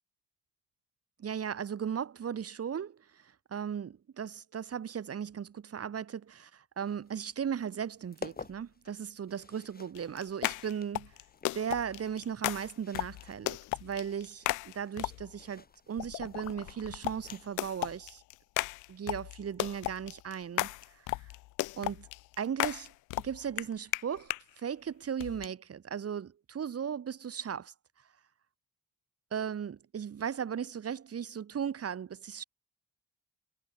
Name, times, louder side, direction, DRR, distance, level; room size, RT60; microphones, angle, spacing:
voice 1, 1.2-11.1 11.5-18.2 18.9-20.7 21.8-22.1 22.4-22.9 23.2-27.7 29.3-32.4, right 8 dB, 35° right, 1.3 m, -37 dB
sound 1, 6.8-17.6, left 4 dB, 20° left, 2.1 m, -52 dB
sound 2, 9.9-15.4 16.0-24.4 25.2-25.5, left 21 dB, 50° left, 0.5 m, -36 dB
figure-of-eight pair, 40°, 41 cm